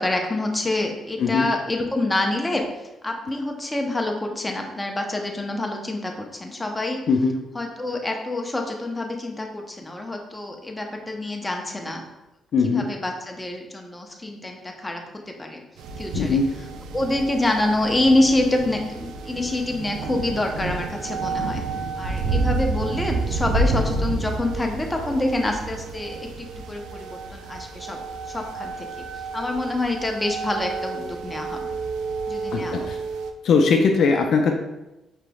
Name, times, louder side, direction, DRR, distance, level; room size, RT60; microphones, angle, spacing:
voice 1, 0.0-2.7 3.0-7.0 7.5-12.0 12.6-15.6 16.0-16.4 16.9-21.6 22.0-28.0 28.3-29.0 29.3-31.8 32.3-32.9, left 2 dB, 15° left, 2 dB, 0.6 m, -26 dB
voice 2, 12.5-12.9 16.1-16.5 32.5-33.0 33.4-34.5, left 4 dB, 65° left, 3 dB, 0.4 m, -20 dB
sound 1, 15.8-33.3, right 3 dB, 90° right, 0.3 m, -30 dB
5.0 x 3.0 x 2.3 m, 0.98 s
cardioid pair, 90°, 0 cm